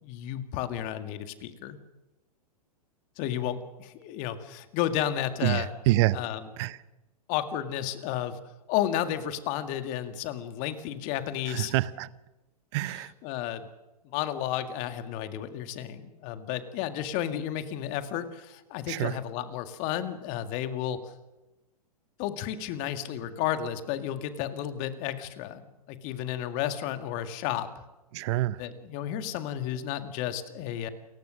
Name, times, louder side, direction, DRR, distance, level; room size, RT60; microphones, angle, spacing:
voice 1, 0.0-1.8 3.2-5.7 6.1-6.5 7.3-8.4 8.7-11.8 12.8-13.7 14.0-21.1 22.2-27.8 28.6-30.9, left 11 dB, 40° left, 2.1 m, -32 dB
voice 2, 5.4-6.2 6.6-6.8 11.5-12.1 12.7-13.1 18.9-19.1 28.1-28.6, right 17 dB, 45° right, 0.8 m, -26 dB
28.5 x 15.0 x 6.5 m
hypercardioid pair, 115°, 20 cm